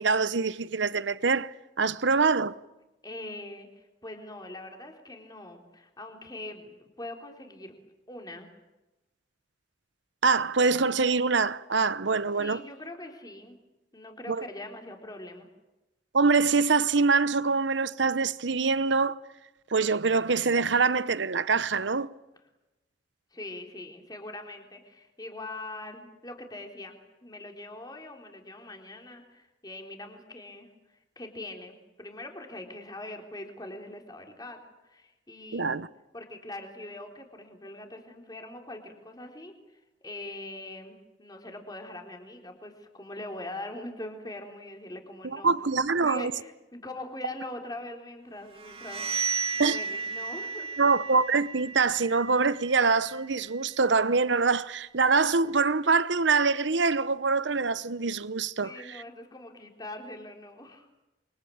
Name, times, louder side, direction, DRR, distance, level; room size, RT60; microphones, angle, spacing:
voice 1, 0.0-2.6 10.2-12.6 14.3-14.5 16.1-19.2 19.7-22.1 35.5-35.9 45.2-46.3 49.6-49.8 50.8-59.0, right 4 dB, 75° right, 0.9 m, -24 dB
voice 2, 3.0-7.8 8.1-8.5 12.4-13.6 13.9-15.5 23.3-34.6 34.8-35.8 36.1-45.5 46.0-49.2 49.5-50.8 58.6-60.9, left 2 dB, 20° left, 3.8 m, -42 dB
sound 1, 48.5-54.2, right 5 dB, 30° right, 2.0 m, -35 dB
29.0 x 24.0 x 8.7 m
head